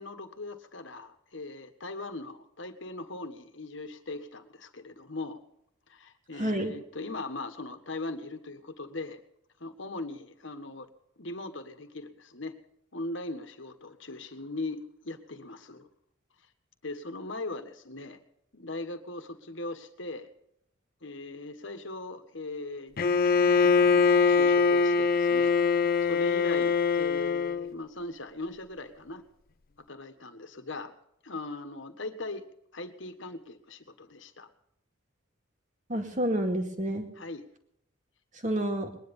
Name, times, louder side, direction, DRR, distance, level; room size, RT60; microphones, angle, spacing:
voice 1, 0.0-5.4 5.9-9.2 9.6-10.9 11.2-12.6 12.9-15.9 16.8-18.2 18.5-20.3 21.0-25.5 26.0-29.2 29.9-30.9 31.2-32.4 32.7-34.5 37.2-37.4, left 2 dB, 65° left, 8 dB, 1.6 m, -40 dB
voice 2, 6.4-6.7 35.9-37.1 38.4-38.9, right 1 dB, 40° right, 4 dB, 2.2 m, -29 dB
Bowed string instrument, 23.0-27.7, left 5 dB, 45° left, 0.6 m, -23 dB
21.0 x 10.5 x 5.5 m, 0.78 s
head